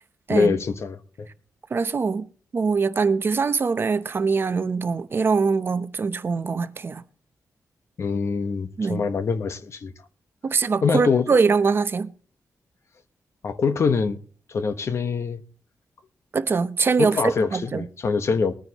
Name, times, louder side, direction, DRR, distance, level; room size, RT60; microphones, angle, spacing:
voice 1, 0.3-1.3 8.0-9.9 10.8-11.4 13.4-14.2 14.5-15.4 17.0-18.5, left 5 dB, 50° left, 1.2 m, -24 dB
voice 2, 1.7-2.2 2.5-7.0 8.8-9.0 10.4-12.1 16.3-17.9, right 5 dB, 40° right, 0.8 m, -23 dB
22.0 x 9.6 x 3.0 m
wide cardioid pair, 135°, 6 cm